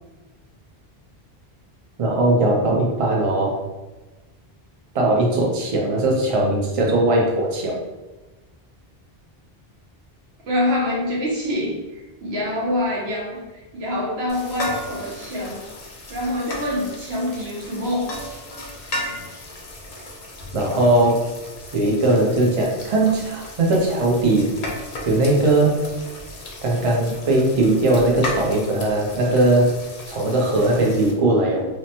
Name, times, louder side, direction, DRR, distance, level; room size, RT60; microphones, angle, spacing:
voice 1, 2.0-3.6 4.9-7.8 20.5-21.2 21.7-24.5 25.1-25.8 26.6-29.7 30.1-31.7, right 2 dB, 45° right, -1 dB, 0.5 m, -19 dB
voice 2, 10.4-15.6 16.1-18.2, left 1 dB, 85° right, -4 dB, 1.1 m, -25 dB
sound 1, 14.3-31.1, left 1 dB, 50° left, 0.5 m, -35 dB
2.9 x 2.1 x 2.7 m, 1.2 s
omnidirectional pair, 1.1 m